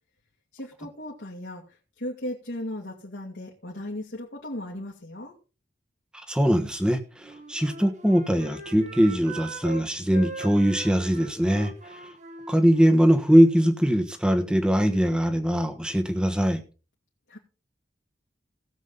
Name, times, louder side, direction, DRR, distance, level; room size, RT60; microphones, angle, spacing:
voice 1, 0.5-5.4 17.3-17.4, left 1 dB, 70° left, -2 dB, 2.2 m, -36 dB
voice 2, 6.3-12.0 12.5-16.6, equal, 5° right, 8 dB, 1.3 m, -21 dB
Wind instrument woodwind instrument, 7.1-9.8 10.1-13.7, right 3 dB, 40° right, 1.7 m, -41 dB
17.0 x 7.4 x 3.9 m, 0.34 s
head